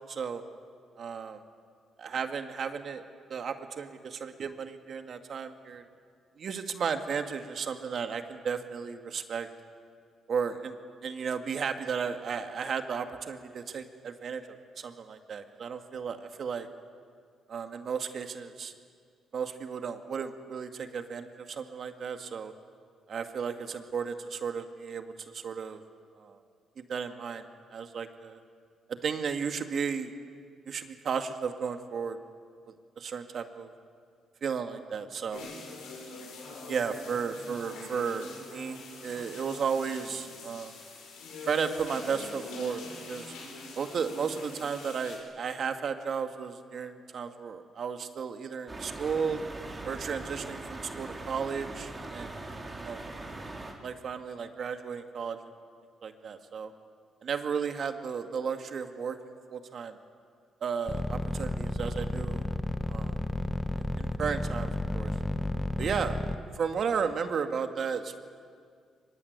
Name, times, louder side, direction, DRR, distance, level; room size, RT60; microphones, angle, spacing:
voice 1, 0.1-0.4 1.0-1.4 2.0-3.0 3.3-5.8 6.4-9.5 10.3-10.8 11.0-16.7 17.5-18.7 19.3-22.5 23.1-25.8 26.2-26.4 26.8-27.4 27.7-28.4 28.9-30.1 30.7-32.2 33.0-33.7 34.4-35.5 36.7-40.7 41.4-43.3 43.8-49.4 49.8-52.3 52.8-53.0 53.8-55.4 56.0-56.7 57.2-60.0 60.6-62.4 62.9-63.2 64.0-65.1 65.8-66.2 66.5-68.2, right 6 dB, 55° right, 7 dB, 2.0 m, -34 dB
sound 1, 35.3-45.2, left 2 dB, 90° left, 6.6 m, -44 dB
sound 2, 48.7-53.7, right 2 dB, 25° right, 4.3 m, -41 dB
sound 3, 60.9-66.4, left 1 dB, 10° left, 1.3 m, -31 dB
23.5 x 21.5 x 9.6 m, 2.1 s
cardioid pair, 90°, 0 cm